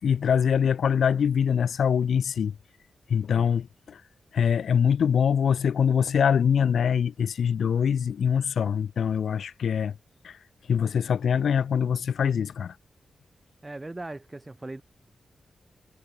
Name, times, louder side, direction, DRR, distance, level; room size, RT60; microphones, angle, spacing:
voice 1, 0.0-2.6 3.1-4.0 4.3-9.9 10.2-10.4 10.7-12.7, left 7 dB, 75° left, 4.1 m, -24 dB
voice 2, 13.6-14.8, right 2 dB, 15° right, 5.6 m, -38 dB
wide cardioid pair, 140°, 0 cm